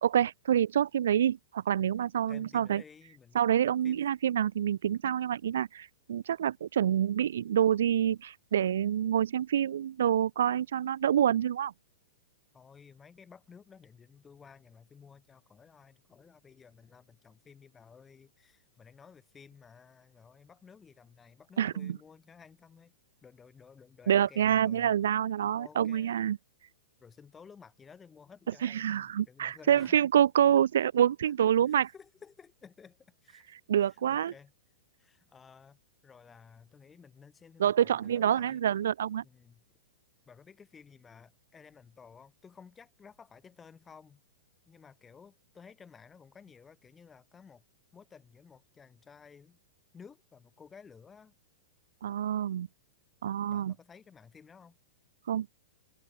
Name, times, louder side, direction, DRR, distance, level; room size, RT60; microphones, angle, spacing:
voice 1, 0.0-2.8 3.3-11.7 21.6-22.0 24.1-26.4 28.6-31.9 33.7-34.3 37.6-39.2 52.0-52.7 53.2-53.7 55.3-55.5, right 10 dB, 75° right, 1.0 m, -27 dB
voice 2, 2.3-3.4 3.8-4.0 12.5-22.9 23.2-24.9 25.5-26.2 27.0-30.0 30.8-30.9 31.2-31.3 31.7-33.5 33.8-34.5 35.0-38.6 39.2-39.6 40.2-44.2 44.6-47.6 47.9-49.6 49.9-51.3 53.5-54.8, left 6 dB, 10° left, 6.8 m, -55 dB
supercardioid pair, 165°, 0 cm